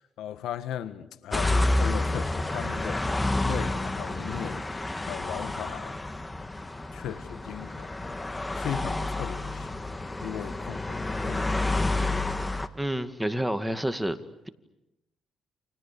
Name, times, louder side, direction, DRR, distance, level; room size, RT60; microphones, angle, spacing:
voice 1, 0.0-6.0 6.9-12.7, left 10 dB, 80° left, 1.6 m, -38 dB
sound 1, 1.3-12.7, left 2 dB, 15° left, 1.7 m, -29 dB
voice 2, 12.7-14.2, right 1 dB, 5° right, 2.2 m, -28 dB
30.0 x 28.5 x 7.0 m
cardioid pair, 90°, 0 cm